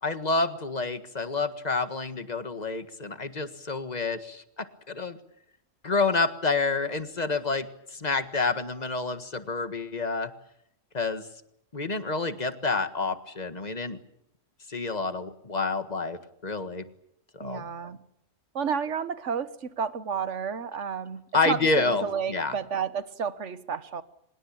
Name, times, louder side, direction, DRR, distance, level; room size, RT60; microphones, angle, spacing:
voice 1, 0.0-5.2 5.8-10.3 10.9-11.2 11.7-14.0 14.7-16.9 17.3-17.6 21.3-22.5, left 3 dB, 30° left, 1.7 m, -28 dB
voice 2, 17.4-18.0 18.5-24.0, right 6 dB, 65° right, 1.5 m, -31 dB
25.0 x 21.0 x 8.6 m
omnidirectional pair, 1.3 m